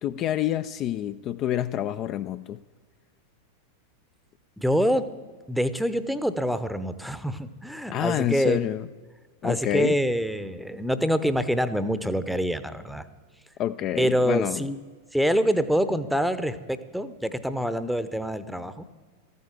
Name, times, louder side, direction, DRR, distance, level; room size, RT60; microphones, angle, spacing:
voice 1, 0.0-2.6 7.9-8.9 9.4-10.0 13.6-14.7, left 12 dB, 35° left, 11 dB, 0.4 m, -27 dB
voice 2, 4.6-5.1 5.5-8.6 9.4-13.0 14.0-14.8 15.1-18.8, equal, ahead, 13 dB, 0.7 m, -25 dB
14.0 x 9.5 x 7.3 m, 1.5 s
figure-of-eight pair, 90°, 0 cm